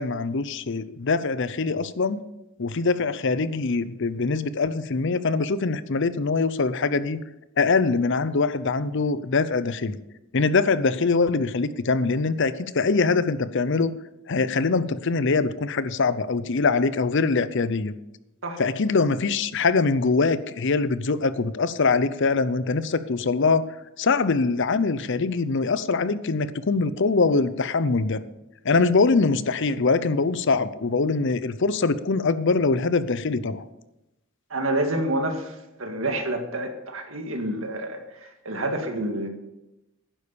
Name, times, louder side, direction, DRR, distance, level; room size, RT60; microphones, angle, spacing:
voice 1, 0.0-2.2 2.6-7.2 7.6-10.0 10.3-13.9 14.3-17.9 18.6-23.6 24.0-28.2 28.6-33.7, left 4 dB, 60° left, 14 dB, 0.7 m, -23 dB
voice 2, 34.5-38.0 38.5-39.3, right 1 dB, 70° right, 4 dB, 2.0 m, -28 dB
11.5 x 10.0 x 7.0 m, 0.94 s
head